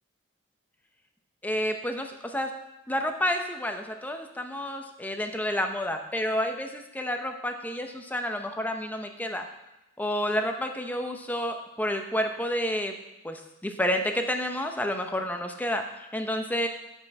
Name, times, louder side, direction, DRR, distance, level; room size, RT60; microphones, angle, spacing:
voice 1, 1.4-2.5 2.9-9.4 10.0-12.9 13.2-16.7, equal, 10° left, 5 dB, 0.7 m, -30 dB
12.5 x 5.5 x 4.7 m, 0.94 s
head